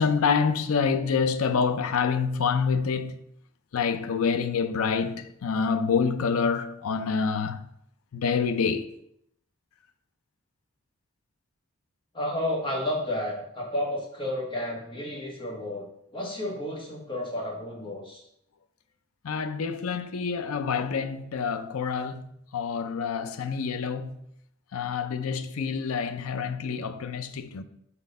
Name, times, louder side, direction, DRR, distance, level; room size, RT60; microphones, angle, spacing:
voice 1, 0.0-3.2 3.7-7.7 8.1-8.9 19.2-22.2 22.5-24.2 24.7-27.6, left 5 dB, 85° left, 0.5 m, -27 dB
voice 2, 12.1-15.8 16.1-18.2, left 1 dB, 25° left, 1.5 m, -31 dB
4.4 x 4.3 x 5.2 m
head